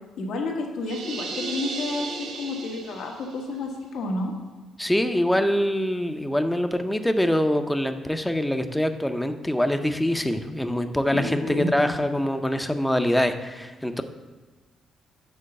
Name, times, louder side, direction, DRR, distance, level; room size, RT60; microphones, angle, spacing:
voice 1, 0.2-4.3 11.1-11.7, left 2 dB, 75° left, 1 dB, 1.2 m, -30 dB
sound 1, 0.8-3.4, right 3 dB, 85° right, 1.1 m, -35 dB
voice 2, 4.8-14.0, left 1 dB, 5° left, 8 dB, 0.6 m, -24 dB
7.6 x 3.8 x 6.5 m, 1.3 s
cardioid pair, 90°, 0 cm